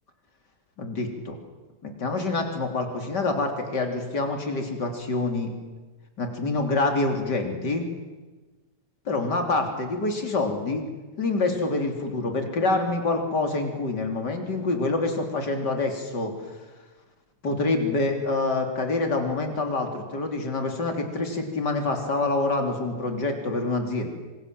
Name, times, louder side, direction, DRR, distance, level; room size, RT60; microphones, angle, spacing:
voice 1, 0.8-1.4 1.8-5.5 6.2-7.8 9.1-10.8 11.2-16.3 17.4-24.1, left 3 dB, 80° left, 3 dB, 4.0 m, -26 dB
26.5 x 26.0 x 7.6 m, 1.2 s
omnidirectional pair, 1.8 m